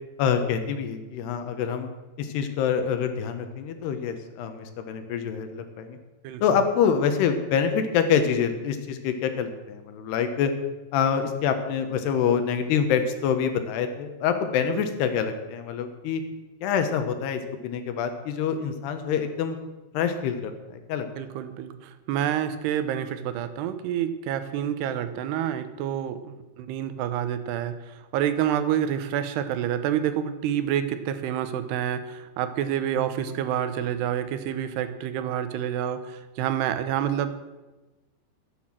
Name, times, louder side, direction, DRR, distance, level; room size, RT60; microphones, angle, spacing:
voice 1, 0.2-1.9 2.2-6.0 6.4-10.5 10.9-16.2 16.6-19.6 19.9-21.1, left 7 dB, 85° left, 8 dB, 3.3 m, -26 dB
voice 2, 6.2-6.6 21.2-37.4, right 10 dB, 90° right, 10 dB, 3.0 m, -28 dB
13.0 x 9.4 x 7.5 m, 1.1 s
omnidirectional pair, 4.6 m